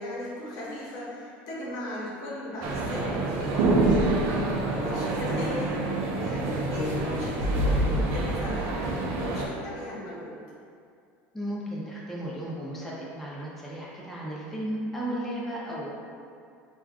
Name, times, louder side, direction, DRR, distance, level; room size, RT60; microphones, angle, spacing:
voice 1, 0.0-3.9 4.6-5.8 6.2-8.8 9.2-10.4, left 1 dB, 65° left, -6 dB, 0.8 m, -37 dB
sound 1, 2.6-9.5, right 2 dB, 60° right, 0.4 m, -26 dB
voice 2, 11.3-15.9, right 1 dB, 5° left, -6 dB, 0.5 m, -34 dB
3.3 x 2.3 x 2.3 m, 2.3 s
supercardioid pair, 100°, 6 cm